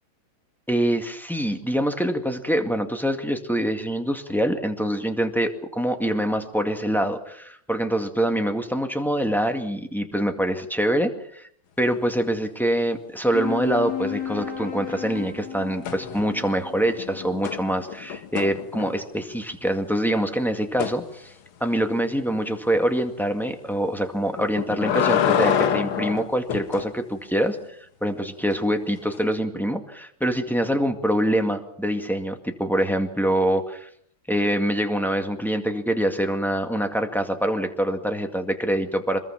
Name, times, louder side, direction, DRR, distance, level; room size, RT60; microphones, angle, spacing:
voice 1, 0.7-11.5 11.8-21.3 21.6-33.9 34.3-39.2, right 1 dB, ahead, 5 dB, 1.8 m, -25 dB
sound 1, 13.3-18.2, left 9 dB, 55° left, 3.6 m, -34 dB
sound 2, 15.8-16.5 16.8-19.2 20.8-21.0 24.4-26.9 29.1-29.2, left 8 dB, 80° left, 2.0 m, -26 dB
25.0 x 21.5 x 5.8 m, 0.66 s
omnidirectional pair, 2.2 m